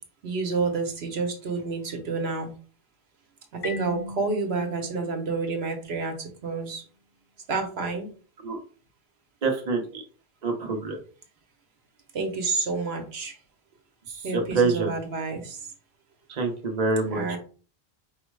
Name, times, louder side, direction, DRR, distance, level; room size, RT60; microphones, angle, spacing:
voice 1, 0.2-2.5 3.5-6.8 7.5-8.1 12.1-13.4 14.2-15.6 17.0-17.4, right 4 dB, 75° right, 4 dB, 1.1 m, -29 dB
Marimba xylophone, 3.6-6.3, left 2 dB, 60° left, 1.1 m, -40 dB
voice 2, 9.4-10.0 10.4-11.0 14.3-14.9 16.3-17.2, right 4 dB, 45° right, 2 dB, 0.9 m, -26 dB
4.6 x 2.1 x 4.6 m, 0.39 s
omnidirectional pair, 1.1 m